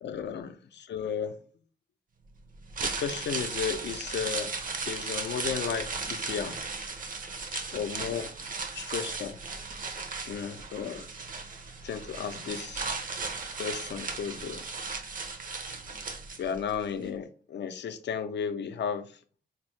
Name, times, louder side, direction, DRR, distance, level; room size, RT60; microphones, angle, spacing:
voice 1, 0.0-1.3 2.8-4.5 4.9-6.6 7.7-8.3 8.7-9.4 10.3-11.1 11.8-12.9 13.6-14.6 16.4-19.1, left 7 dB, 75° left, 0.4 m, -34 dB
sound 1, 2.5-16.7 17.0-17.1, right 4 dB, 50° right, 0.5 m, -36 dB
4.2 x 2.0 x 3.0 m
wide cardioid pair, 115°, 18 cm